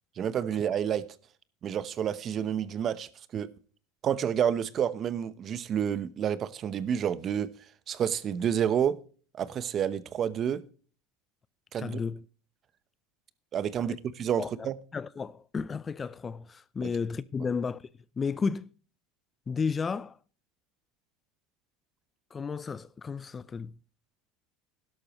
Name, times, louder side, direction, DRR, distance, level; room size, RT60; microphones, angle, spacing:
voice 1, 0.2-1.1 1.6-3.5 4.0-7.5 7.9-9.0 9.3-10.6 11.7-12.0 13.5-14.7 16.8-16.9, right 9 dB, 40° right, 0.9 m, -29 dB
voice 2, 11.8-12.2 13.8-13.9 14.4-17.8 18.2-18.7 19.5-20.2 22.3-23.7, left 5 dB, 25° left, 0.5 m, -33 dB
12.0 x 12.0 x 3.0 m
supercardioid pair, 115°, 0 cm